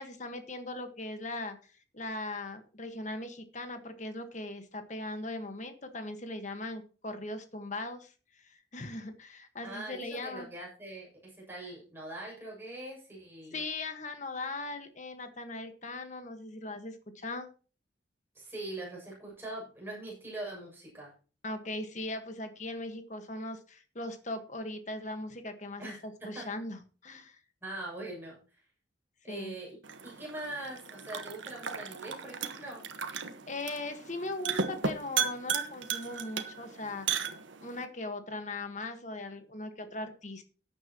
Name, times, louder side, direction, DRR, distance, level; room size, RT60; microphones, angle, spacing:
voice 1, 0.0-1.6 1.9-8.1 8.4-10.5 13.5-17.5 21.4-27.4 29.3-29.5 33.5-37.1 37.6-40.4, left 2 dB, 40° left, 8 dB, 1.5 m, -39 dB
voice 2, 9.6-13.6 18.4-21.1 25.8-26.5 27.6-28.6 29.2-29.8 30.0-32.8, right 2 dB, 10° right, -4 dB, 6.9 m, -42 dB
sound 1, 29.8-37.8, right 6 dB, 80° right, 1.3 m, -36 dB
14.5 x 9.7 x 3.0 m, 0.37 s
head